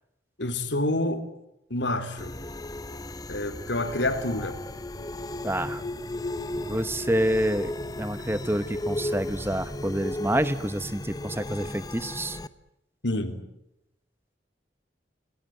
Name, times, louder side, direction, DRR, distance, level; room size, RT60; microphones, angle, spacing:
voice 1, 0.4-1.2 1.7-2.3 3.3-4.6 13.0-13.3, left 1 dB, 85° left, 8 dB, 3.4 m, -28 dB
sound 1, 2.2-12.5, left 1 dB, 20° left, 0.9 m, -35 dB
voice 2, 5.4-5.8 6.6-12.4, right 1 dB, 15° right, 13 dB, 1.0 m, -28 dB
28.5 x 19.0 x 9.2 m, 0.87 s
head